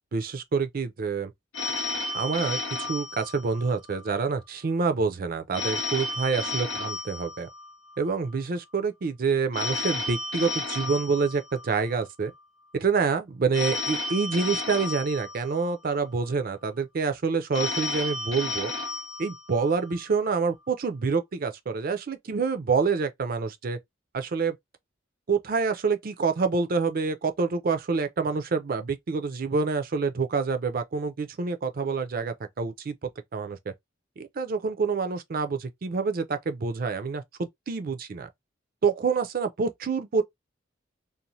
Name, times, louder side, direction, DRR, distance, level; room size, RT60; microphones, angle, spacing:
voice 1, 0.1-1.3 2.1-7.5 8.0-12.3 12.7-18.7 19.2-23.8 24.1-24.6 25.3-32.9 33.3-33.7 34.2-38.3 38.8-40.2, right 4 dB, 50° right, 0.4 m, -27 dB
Telephone, 1.5-4.0 5.5-8.0 9.5-12.0 13.5-16.0 17.5-20.0, left 2 dB, 90° left, 0.8 m, -33 dB
2.6 x 2.1 x 2.9 m
head